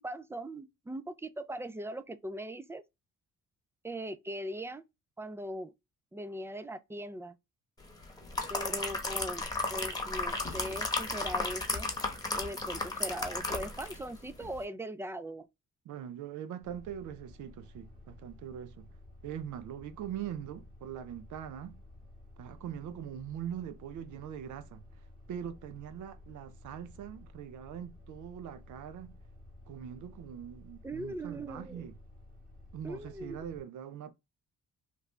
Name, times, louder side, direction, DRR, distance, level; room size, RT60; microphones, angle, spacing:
voice 1, 0.0-2.8 3.8-4.8 5.2-5.7 6.1-7.4 8.5-11.9 12.3-15.5 30.8-31.9 32.8-33.4, right 1 dB, 10° right, 0.3 m, -40 dB
sound 1, 8.0-14.1 14.4-14.6, left 2 dB, 15° left, 1.0 m, -34 dB
voice 2, 15.9-18.9 19.2-21.8 22.4-24.8 25.3-29.2 29.7-31.9 32.7-34.1, right 9 dB, 75° right, 0.6 m, -42 dB
sound 2, 16.6-33.6, left 2 dB, 30° right, 1.4 m, -54 dB
3.2 x 2.5 x 3.2 m
cardioid pair, 90°, 30 cm